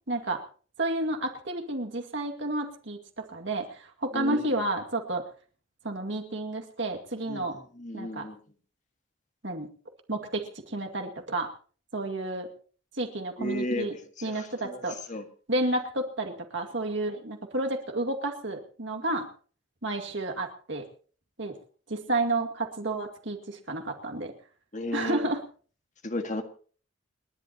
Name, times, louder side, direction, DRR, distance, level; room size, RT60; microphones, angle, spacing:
voice 1, 0.1-0.4 0.8-5.2 5.8-7.6 7.9-8.3 9.4-9.7 10.1-11.5 11.9-12.5 13.0-13.9 14.2-15.0 15.5-19.3 19.8-20.8 21.4-21.5 21.9-24.3 24.9-25.4, right 2 dB, 60° right, 3 dB, 2.2 m, -31 dB
voice 2, 4.1-4.5 7.3-8.4 13.4-14.8 15.1-15.2 24.7-25.3 26.0-26.4, left 1 dB, 40° left, 6 dB, 1.7 m, -34 dB
29.5 x 11.0 x 2.9 m, 0.42 s
head